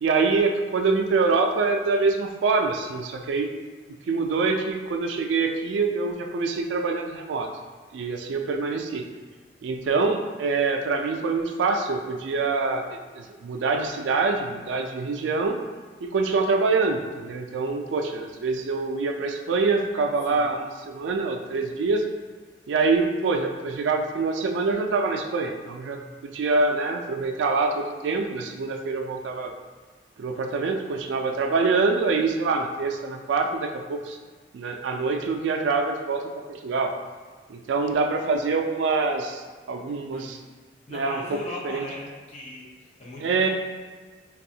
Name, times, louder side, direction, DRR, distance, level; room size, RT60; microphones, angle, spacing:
voice 1, 0.0-3.5 4.1-7.5 7.9-9.0 9.6-15.6 16.0-22.0 22.7-29.5 30.2-34.2 34.5-36.2 36.5-36.9 37.5-40.4 40.9-41.4 41.6-41.8 43.2-43.5, right 4 dB, 90° right, 4 dB, 0.3 m, -25 dB
voice 2, 40.9-43.5, left 1 dB, 40° left, -4 dB, 0.7 m, -38 dB
3.3 x 2.3 x 2.7 m, 1.4 s
head